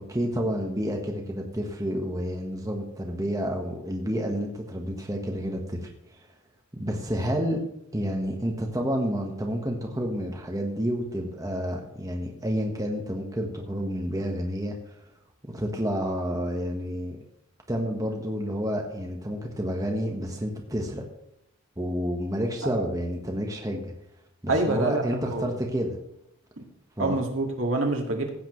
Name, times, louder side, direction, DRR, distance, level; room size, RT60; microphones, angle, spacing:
voice 1, 0.0-5.9 6.7-7.6 7.9-14.7 15.4-17.2 17.7-21.0 21.8-23.9 24.4-26.0 27.0-27.2, equal, 15° right, 1 dB, 1.3 m, -29 dB
voice 2, 24.5-25.4 26.6-26.7 27.0-28.3, right 2 dB, 70° right, 2 dB, 2.1 m, -26 dB
16.0 x 8.6 x 3.2 m, 0.77 s
head